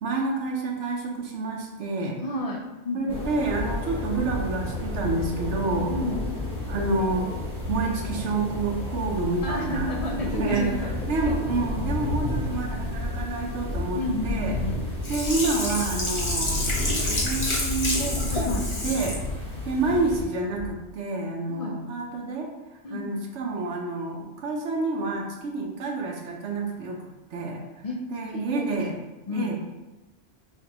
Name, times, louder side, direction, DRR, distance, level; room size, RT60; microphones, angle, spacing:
voice 1, 0.0-2.2 2.9-5.9 6.7-7.3 7.7-9.9 10.3-10.7 11.1-14.6 15.1-16.7 16.9-19.2 19.6-27.6 28.1-29.0 29.3-29.6, right 3 dB, 70° right, 0 dB, 0.9 m, -28 dB
voice 2, 2.2-3.2 5.9-6.3 9.4-10.9 11.2-11.4 13.9-14.8 18.3-18.7 21.5-21.8 22.8-23.0 27.8-28.8 29.3-29.6, left 2 dB, 50° left, 0 dB, 0.4 m, -31 dB
sound 1, 3.1-20.2, left 2 dB, 5° left, 1.0 m, -31 dB
sound 2, 12.9-13.4 14.3-15.5 16.4-17.6 18.4-19.6 20.5-20.7, right 2 dB, 50° right, 0.7 m, -41 dB
Sink (filling or washing), 15.0-19.2 19.7-19.8, left 1 dB, 30° left, 0.8 m, -29 dB
5.8 x 2.5 x 2.8 m, 1.1 s
omnidirectional pair, 1.3 m